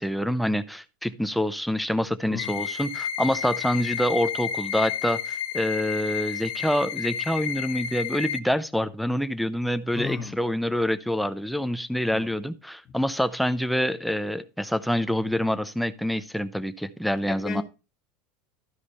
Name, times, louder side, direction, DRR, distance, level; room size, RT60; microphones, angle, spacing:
voice 1, 0.0-17.6, equal, ahead, 0.7 m, -26 dB
voice 2, 2.3-2.7 9.9-10.4 12.1-12.3 17.3-17.6, left 7 dB, 25° left, 1.4 m, -35 dB
sound 1, 2.4-8.4, left 8 dB, 70° left, 0.9 m, -31 dB
13.0 x 5.0 x 4.3 m
supercardioid pair, 125°, 0 cm